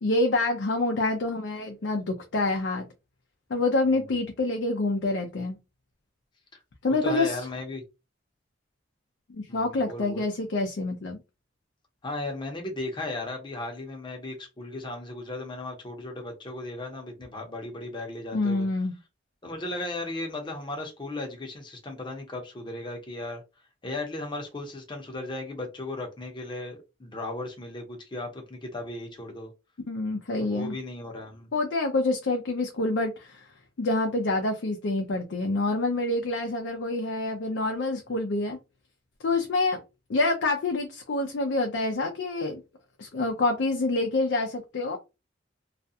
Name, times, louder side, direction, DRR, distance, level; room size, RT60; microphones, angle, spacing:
voice 1, 0.0-2.9 3.5-5.6 6.8-7.3 9.3-11.2 18.3-19.0 29.9-30.7 31.5-33.5 33.8-38.6 39.2-39.8 40.1-42.6 43.0-45.0, left 2 dB, 70° left, 0.5 m, -27 dB
voice 2, 6.9-7.8 9.5-10.2 12.0-18.7 19.4-23.4 23.8-29.5 30.4-31.5, left 2 dB, 25° left, 0.7 m, -36 dB
2.4 x 2.2 x 2.7 m
head